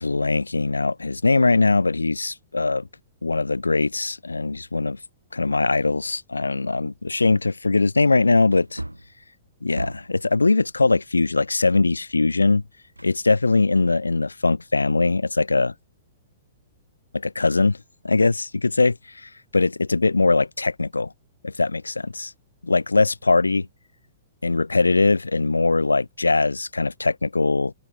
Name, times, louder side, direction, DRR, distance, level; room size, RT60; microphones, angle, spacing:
voice 1, 0.0-2.9 3.2-5.0 5.3-8.8 9.6-12.6 13.0-15.7 17.1-17.8 18.0-21.1 21.4-22.3 22.6-23.7 24.4-27.7, left 3 dB, 80° left, 0.4 m, -21 dB
Wood, 6.4-6.5 7.1-7.2 8.5-10.3 12.9-13.7 14.1-14.2, right 1 dB, 90° right, 0.5 m, -37 dB
open air
figure-of-eight pair, 110°, 0 cm